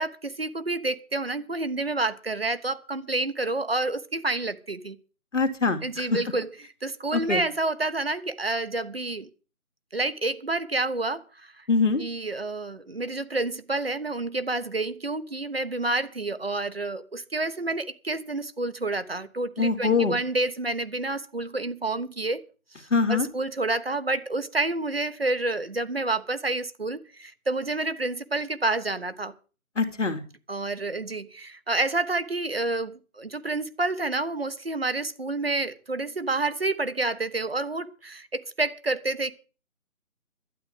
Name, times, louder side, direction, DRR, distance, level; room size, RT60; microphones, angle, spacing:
voice 1, 0.0-5.0 5.8-6.5 6.8-9.3 9.9-11.6 12.0-22.4 22.8-29.3 30.5-39.3, right 2 dB, 45° right, 1.1 m, -29 dB
voice 2, 5.3-6.2 7.1-7.4 11.7-12.0 19.6-20.1 22.9-23.3 29.8-30.2, left 4 dB, 55° left, 2.5 m, -23 dB
12.5 x 9.3 x 7.6 m
figure-of-eight pair, 175°, 43 cm